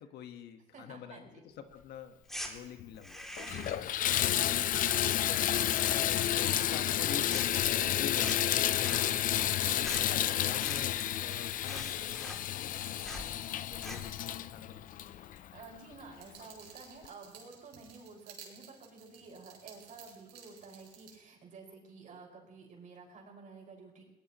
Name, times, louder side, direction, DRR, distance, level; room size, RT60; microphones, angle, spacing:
voice 1, 0.0-3.3 5.1-15.0, left 8 dB, 75° left, 7 dB, 1.4 m, -47 dB
voice 2, 0.7-1.4 3.4-3.9 15.1-24.0, right 4 dB, 50° right, -1 dB, 5.6 m, -51 dB
sound 1, 2.2-2.5 2.9-5.4 5.6-6.1 6.4-7.0 7.3-11.1 11.3-11.4 11.6-12.7 13.0-13.3 13.7-14.2, equal, ahead, 2.7 m, -45 dB
Water tap faucet / Bathtub (filling or washing), 2.8-2.9 3.4-15.8 16.4-16.5 17.0-17.1, left 11 dB, 55° left, 0.5 m, -31 dB
sound 2, 16.1-21.2, right 7 dB, 80° right, 5.0 m, -55 dB
20.5 x 20.0 x 3.1 m, 0.97 s
cardioid pair, 110°, 17 cm